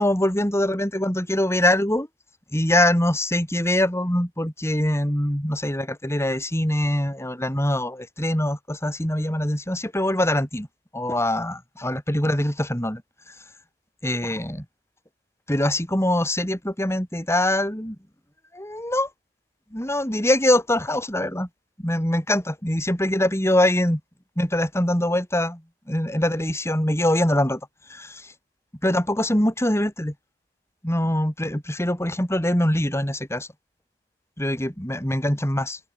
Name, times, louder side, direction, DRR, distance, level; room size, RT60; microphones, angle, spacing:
voice 1, 0.0-2.1 2.5-10.7 10.9-13.0 14.0-14.6 15.5-18.0 18.5-19.1 19.7-21.5 21.8-24.0 24.4-25.6 25.9-27.6 27.9-28.3 28.8-30.1 30.8-33.5 34.4-35.8, left 1 dB, 15° left, 7.7 m, -23 dB
head